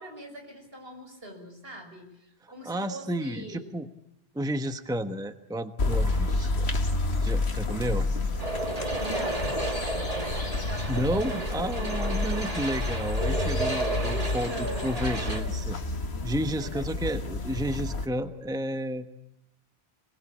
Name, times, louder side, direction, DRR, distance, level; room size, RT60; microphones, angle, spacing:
voice 1, 0.0-3.7 9.0-9.7 10.2-10.9 11.2-12.1 13.8-15.6 16.6-17.2, right 1 dB, 70° right, 3 dB, 6.7 m, -41 dB
voice 2, 2.4-3.9 4.3-6.7 7.2-8.1 10.9-14.5 14.8-15.8 16.2-19.1, equal, 5° right, 8 dB, 1.1 m, -31 dB
sound 1, 5.8-18.0, left 2 dB, 85° left, 2.0 m, -30 dB
sound 2, 8.4-15.4, right 2 dB, 35° right, 2.5 m, -33 dB
27.5 x 20.5 x 8.6 m, 0.82 s
omnidirectional pair, 1.1 m